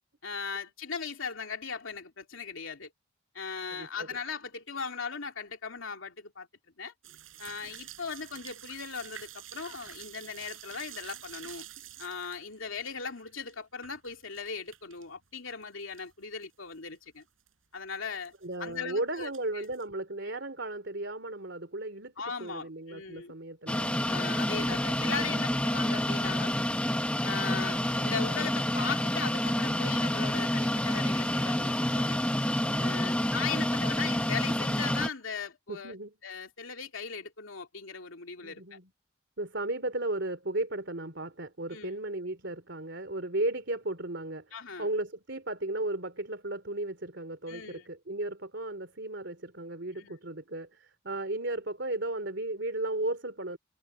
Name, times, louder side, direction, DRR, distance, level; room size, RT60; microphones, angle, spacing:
voice 1, 0.2-2.9 3.3-6.5 6.8-6.9 7.4-11.7 12.0-17.2 17.7-18.3 18.6-19.7 22.2-23.3 24.1-26.5 27.2-32.2 32.8-36.0 36.2-38.8 41.7-41.9 44.5-44.9 47.5-47.8 50.0-50.2, left 5 dB, 85° left, 2.9 m, -38 dB
voice 2, 3.7-4.1 18.4-22.1 22.4-24.0 24.5-25.4 32.6-33.3 35.7-36.1 38.4-38.9 39.4-53.6, right 2 dB, 60° right, 3.5 m, -35 dB
sound 1, 7.0-15.0 15.3-16.1 16.4-16.5 17.0-17.1 17.2-17.5 18.3-18.8 19.2-19.8, right 11 dB, 85° right, 4.5 m, -48 dB
sound 2, 23.7-35.1, left 1 dB, 5° left, 0.9 m, -28 dB
head